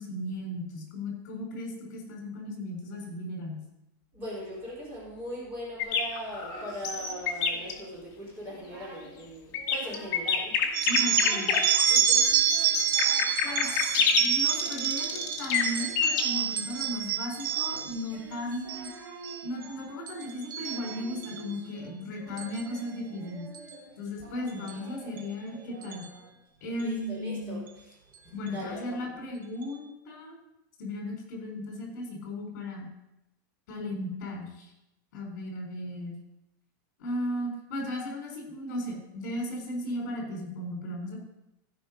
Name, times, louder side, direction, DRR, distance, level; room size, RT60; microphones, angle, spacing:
voice 1, 0.0-3.6 10.9-11.5 13.4-18.9 19.4-23.5 24.0-26.1 26.6-27.6 28.3-30.3 30.8-32.9 33.7-34.7 35.1-36.1 37.0-41.2, left 1 dB, 55° left, 0 dB, 4.4 m, -36 dB
voice 2, 4.1-10.8 11.3-12.5 24.5-24.7 26.8-27.7 28.2-29.1, equal, 20° right, -6 dB, 3.7 m, -40 dB
sound 1, 5.8-7.7 9.5-16.3, left 7 dB, 30° left, 1.4 m, -27 dB
Singing, 6.5-8.0 8.4-9.1 9.5-10.3 10.6-11.5 12.0-26.5, right 3 dB, 40° right, 2.9 m, -49 dB
sound 2, 10.7-18.0 18.5-18.9 19.2-19.7 20.1-21.4 22.4-22.6 23.5-23.7 24.7-24.8 25.2-25.3 25.8-26.0, right 9 dB, 80° right, 1.3 m, -28 dB
15.5 x 5.3 x 5.3 m, 0.89 s
supercardioid pair, 180°, 11 cm